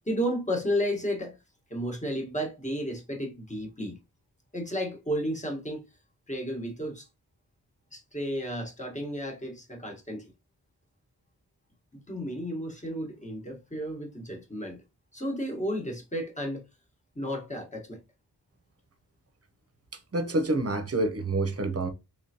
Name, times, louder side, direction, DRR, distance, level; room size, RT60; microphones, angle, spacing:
voice 1, 0.0-1.4 1.7-4.0 4.5-5.9 6.3-7.1 7.9-10.3 11.9-14.8 15.1-16.6 17.1-18.0, equal, 20° left, 1.3 m, -32 dB
voice 2, 20.1-21.9, right 2 dB, 40° right, 0.8 m, -27 dB
3.6 x 3.3 x 2.8 m
wide cardioid pair, 100°, 38 cm